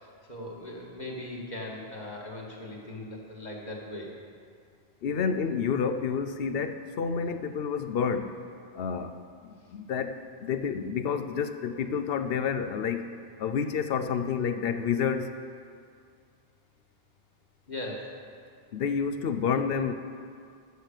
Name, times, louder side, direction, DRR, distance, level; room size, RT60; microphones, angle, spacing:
voice 1, 0.0-4.1 17.7-18.1, left 1 dB, 40° left, -3 dB, 1.9 m, -39 dB
voice 2, 5.0-8.3 8.7-9.2 9.4-13.1 13.4-15.3 18.7-19.9, left 6 dB, 65° left, 9 dB, 0.8 m, -29 dB
13.5 x 6.4 x 6.6 m, 2.3 s
omnidirectional pair, 1.1 m